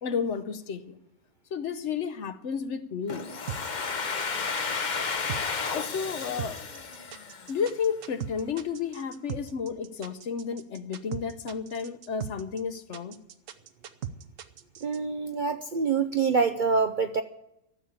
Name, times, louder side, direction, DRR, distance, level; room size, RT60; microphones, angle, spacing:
voice 1, 0.0-1.0 1.5-3.2 5.7-6.6 7.5-13.2, left 6 dB, 60° left, 1.0 m, -32 dB
Domestic sounds home sounds, 3.1-7.8, left 5 dB, 40° left, 0.8 m, -32 dB
sound 1, 3.5-15.0, right 9 dB, 70° right, 1.1 m, -39 dB
voice 2, 14.8-17.2, right 5 dB, 55° right, 0.6 m, -26 dB
14.0 x 7.2 x 9.8 m
omnidirectional pair, 1.5 m